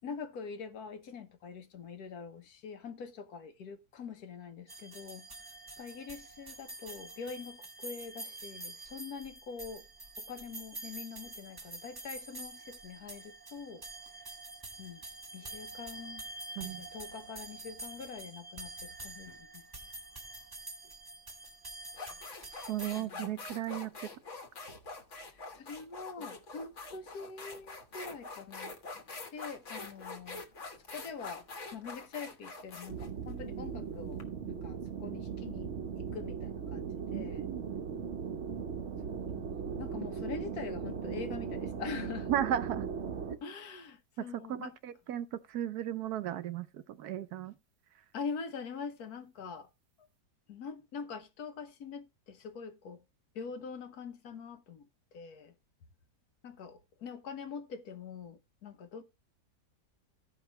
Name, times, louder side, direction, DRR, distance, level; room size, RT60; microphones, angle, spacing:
voice 1, 0.0-5.3 5.8-9.8 10.2-13.9 14.8-15.0 15.3-16.2 16.5-19.6 23.0-23.4 25.2-29.0 29.3-30.4 30.9-31.5 31.7-35.7 36.1-37.5 39.0-42.3 43.4-44.8 48.1-49.7 50.0-50.1 50.5-53.0 53.3-54.9 55.1-55.5 56.4-59.0, left 5 dB, 65° left, 1.4 m, -44 dB
sound 1, 4.7-23.0, right 2 dB, 20° right, 0.6 m, -47 dB
sound 2, 21.3-21.4 21.9-34.2, left 3 dB, 45° left, 1.5 m, -45 dB
voice 2, 22.7-24.1 37.1-37.6 42.3-42.9 44.2-47.5, right 11 dB, 70° right, 1.1 m, -35 dB
sound 3, 32.9-43.4, right 6 dB, 50° right, 1.0 m, -38 dB
15.0 x 5.3 x 2.9 m
omnidirectional pair, 1.8 m